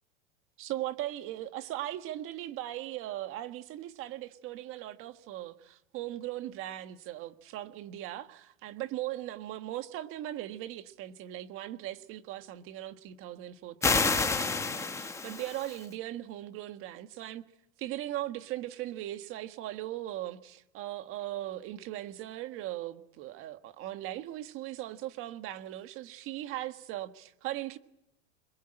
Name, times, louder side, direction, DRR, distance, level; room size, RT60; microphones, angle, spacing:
voice 1, 0.6-17.4 17.8-27.8, right 14 dB, 35° right, 1.5 m, -39 dB
sound 1, 13.8-15.9, left 4 dB, 10° left, 1.1 m, -29 dB
27.0 x 21.5 x 8.9 m
supercardioid pair, 165°, 35 cm